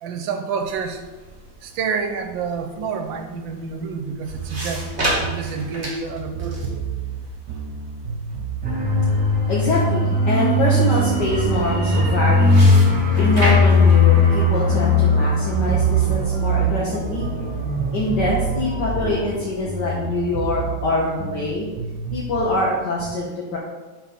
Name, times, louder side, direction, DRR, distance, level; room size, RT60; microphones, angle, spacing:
voice 1, 0.0-1.0 1.6-6.9, right 5 dB, 85° right, 6 dB, 1.5 m, -28 dB
sound 1, 0.6-18.3, right 1 dB, 35° right, 2.3 m, -34 dB
sound 2, 4.3-10.6 10.9-15.2 15.5-19.8 20.0-22.6, right 6 dB, 60° right, 1.1 m, -32 dB
sound 3, 8.6-21.0 21.3-21.5, left 2 dB, 5° right, 1.1 m, -19 dB
voice 2, 9.5-12.8 13.2-17.3 17.9-21.7 22.1-23.6, left 2 dB, 65° left, -5 dB, 1.7 m, -24 dB
10.5 x 4.3 x 4.3 m, 1.2 s
omnidirectional pair, 2.1 m